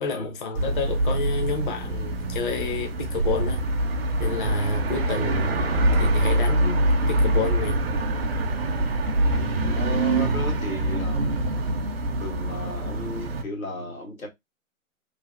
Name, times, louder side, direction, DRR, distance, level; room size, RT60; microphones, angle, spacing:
voice 1, 0.0-3.6 4.2-7.8, left 3 dB, 40° left, 0.7 m, -29 dB
sound 1, 0.5-13.4, right 1 dB, 45° right, 0.6 m, -24 dB
voice 2, 9.7-11.4 12.2-14.3, left 2 dB, 85° left, 1.6 m, -35 dB
3.3 x 2.4 x 2.4 m
hypercardioid pair, 150°, 41 cm